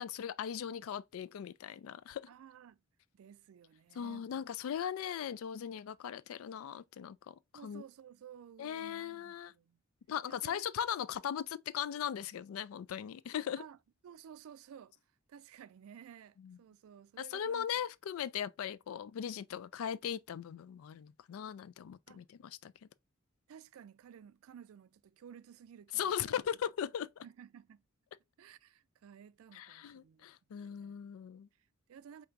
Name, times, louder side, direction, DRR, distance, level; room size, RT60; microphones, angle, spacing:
voice 1, 0.0-2.3 4.0-7.8 8.6-9.5 10.1-13.6 16.4-16.6 17.2-22.7 25.9-27.2 29.5-31.5, left 9 dB, 75° left, 0.3 m, -39 dB
voice 2, 2.3-2.8 3.1-4.4 7.5-9.8 10.3-10.6 13.6-13.8 14.0-14.9 15.3-17.7 22.1-22.2 23.5-26.4 27.2-27.8 28.4-31.0 31.6-32.3, right 8 dB, 80° right, 0.3 m, -55 dB
4.5 x 2.8 x 2.4 m
head